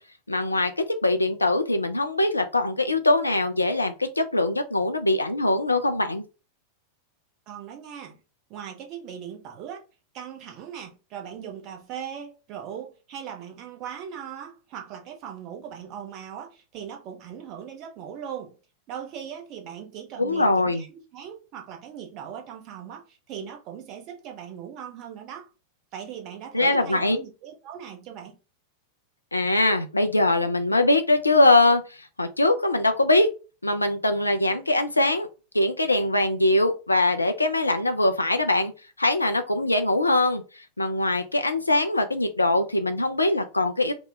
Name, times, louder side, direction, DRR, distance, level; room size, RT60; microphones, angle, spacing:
voice 1, 0.3-0.7 1.0-6.2 20.2-20.8 26.5-27.2 29.3-31.8 32.2-33.3 33.6-35.3 35.5-38.7 39.0-40.4 40.8-43.9, left 2 dB, 85° left, 0.4 m, -22 dB
voice 2, 7.5-8.2 8.5-9.8 10.1-18.6 18.9-25.5 25.9-28.4, right 8 dB, 40° right, 0.8 m, -39 dB
3.0 x 2.2 x 3.7 m
figure-of-eight pair, 90°, 0 cm